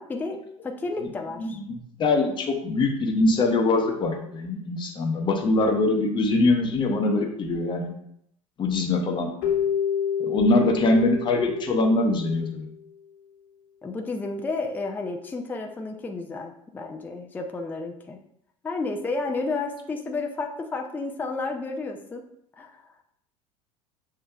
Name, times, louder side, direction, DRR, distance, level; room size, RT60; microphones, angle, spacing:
voice 1, 0.0-1.6 13.8-18.2 18.6-22.2 22.6-22.8, left 3 dB, 10° left, 4 dB, 0.4 m, -31 dB
voice 2, 1.4-7.9 8.6-9.3 10.2-12.7, left 2 dB, 30° left, 3 dB, 0.8 m, -23 dB
Keyboard (musical), 9.4-12.7, left 8 dB, 50° left, 1.1 m, -28 dB
7.0 x 2.7 x 2.3 m, 0.73 s
figure-of-eight pair, 75°, 17 cm